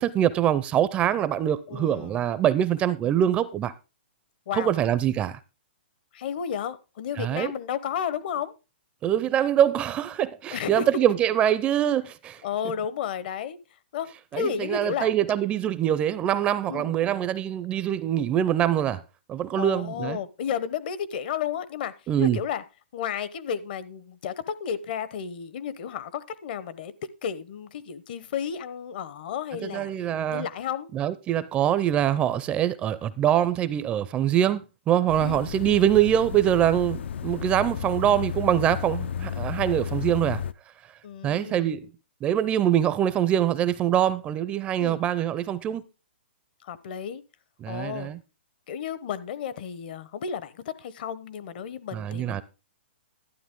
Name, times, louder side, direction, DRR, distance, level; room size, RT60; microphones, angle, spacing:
voice 1, 0.0-3.7 4.5-5.4 7.2-7.5 9.0-12.4 14.3-19.0 19.3-20.2 22.1-22.4 29.6-30.5 30.9-40.4 41.2-41.9 42.2-45.8 47.6-48.2 51.9-52.4, right 10 dB, 20° right, 0.4 m, -24 dB
voice 2, 1.7-2.1 4.5-4.7 6.1-8.5 10.5-10.9 12.4-13.6 13.9-15.1 16.7-16.9 19.6-22.6 22.9-29.9 30.3-30.9 35.2-35.4 41.0-41.8 44.8-45.0 46.6-47.2 47.7-48.1 48.7-52.4, left 8 dB, 50° left, 0.8 m, -32 dB
sound 1, 35.1-40.5, left 8 dB, 75° left, 0.5 m, -33 dB
11.5 x 9.4 x 3.6 m
hypercardioid pair, 150°, 6 cm